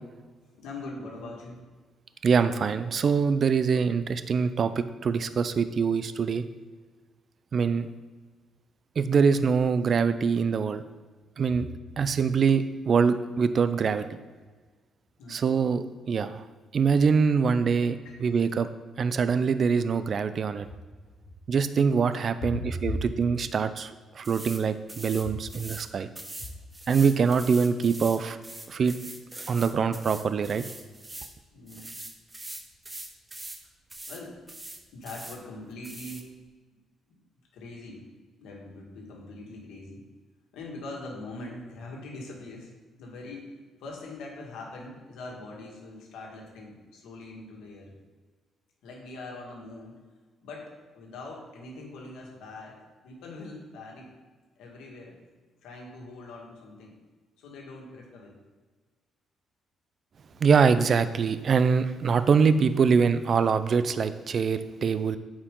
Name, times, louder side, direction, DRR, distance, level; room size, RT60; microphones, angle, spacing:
voice 1, 0.6-1.6 11.6-11.7 15.2-15.6 17.7-18.2 22.5-22.7 31.5-32.0 34.1-34.4 34.9-36.3 37.5-38.0 38.4-40.0 40.5-42.7 43.0-43.5 43.8-47.9 48.8-49.9 50.4-54.1 54.6-55.2 55.6-56.9 57.4-58.4, left 2 dB, 85° left, -1 dB, 1.8 m, -42 dB
voice 2, 2.2-6.4 7.5-7.9 9.0-10.8 11.4-11.7 12.0-14.1 15.3-16.4 16.7-18.7 19.0-20.7 21.5-26.1 26.9-28.4 28.7-28.9 29.5-30.6 60.4-65.2, right 5 dB, 50° right, 12 dB, 0.4 m, -24 dB
sound 1, 24.2-24.6 24.9-25.9 26.2-31.3 31.7-33.6 33.9-34.2 34.5-35.4 35.8-36.2, right 2 dB, 20° right, 0.9 m, -42 dB
8.6 x 4.8 x 3.7 m, 1.4 s
cardioid pair, 90°, 0 cm